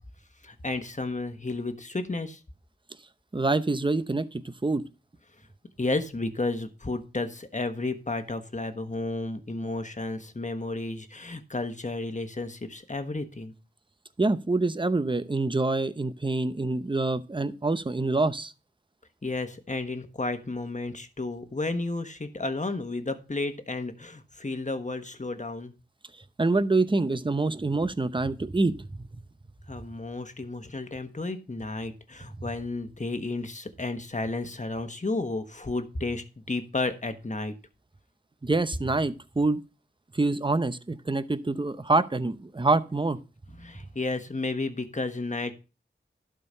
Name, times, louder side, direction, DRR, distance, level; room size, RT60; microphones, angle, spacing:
voice 1, 0.4-2.4 5.8-13.5 19.2-25.7 29.7-37.6 43.6-45.5, left 2 dB, 35° left, 9 dB, 1.3 m, -32 dB
voice 2, 3.3-4.8 14.2-18.5 26.4-29.1 38.4-39.6 40.1-43.2, right 3 dB, 25° right, 13 dB, 0.7 m, -26 dB
12.0 x 4.5 x 5.5 m, 0.32 s
wide cardioid pair, 45°, 20 cm